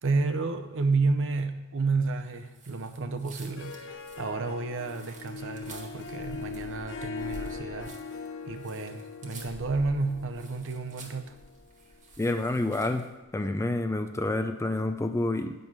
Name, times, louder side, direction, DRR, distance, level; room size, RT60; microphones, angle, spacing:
voice 1, 0.0-7.9 8.5-11.3, right 3 dB, 60° right, 8 dB, 0.7 m, -31 dB
sound 1, 2.5-13.1, right 1 dB, 35° right, 1.4 m, -49 dB
Harp, 3.4-12.0, left 5 dB, 55° left, 0.7 m, -41 dB
voice 2, 12.2-13.1 13.3-15.5, left 2 dB, 15° left, 8 dB, 0.4 m, -28 dB
8.9 x 5.4 x 6.2 m, 1.0 s
head